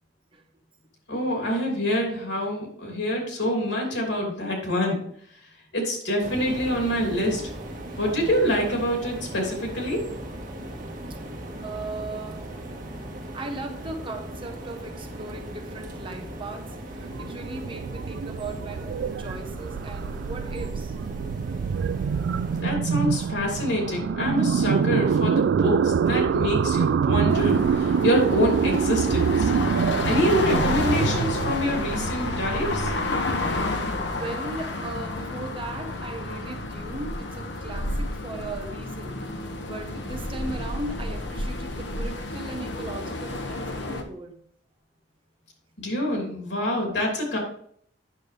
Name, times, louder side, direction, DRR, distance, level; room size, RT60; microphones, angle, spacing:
voice 1, 1.1-5.0 5.7-7.5 8.0-10.0 22.6-29.5 30.1-32.9 45.8-47.4, equal, 90° left, 0 dB, 3.0 m, -26 dB
sound 1, 6.2-22.6, right 1 dB, 50° right, 1.5 m, -38 dB
voice 2, 11.6-12.5 13.3-20.9 30.2-30.4 34.1-39.2 39.6-44.4, right 2 dB, 30° right, 3 dB, 1.1 m, -37 dB
sound 2, 17.0-34.8, right 6 dB, 75° right, 0.3 m, -26 dB
sound 3, 27.3-44.0, left 2 dB, 75° left, 1.1 m, -30 dB
9.1 x 6.5 x 3.4 m, 0.63 s
head